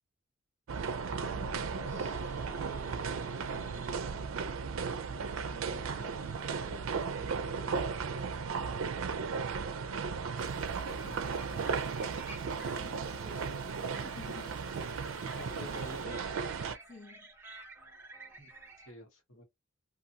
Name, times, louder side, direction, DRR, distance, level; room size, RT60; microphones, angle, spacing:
sound 1, 0.7-18.9, right 2 dB, 10° right, 0.7 m, -54 dB
sound 2, 0.7-16.8, right 5 dB, 80° right, 0.4 m, -35 dB
voice 1, 1.2-3.9 5.1-9.0 12.4-14.7 16.8-17.3, left 4 dB, 55° left, 0.9 m, -53 dB
sound 3, 10.4-16.1, left 3 dB, 20° left, 0.4 m, -55 dB
voice 2, 15.4-16.4 18.4-18.5 18.8-19.4, equal, 90° left, 1.1 m, -48 dB
2.6 x 2.5 x 2.8 m
head